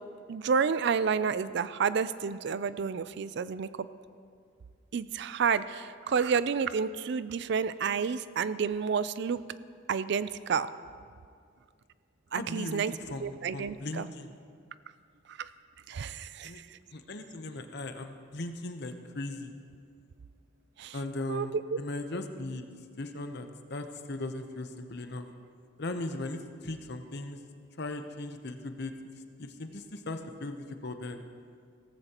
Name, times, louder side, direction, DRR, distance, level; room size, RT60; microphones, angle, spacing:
voice 1, 0.3-3.9 4.9-9.4 9.9-10.7 12.3-12.9 13.2-14.1 15.3-15.5 15.9-16.8 20.8-21.0 21.3-21.8, right 6 dB, 60° right, 15 dB, 0.4 m, -30 dB
voice 2, 12.3-14.3 16.4-16.6 16.9-19.5 20.9-22.6 23.0-25.3 25.8-27.4 27.8-31.2, left 2 dB, 60° left, 7 dB, 0.9 m, -38 dB
17.0 x 14.5 x 3.0 m, 2.2 s
head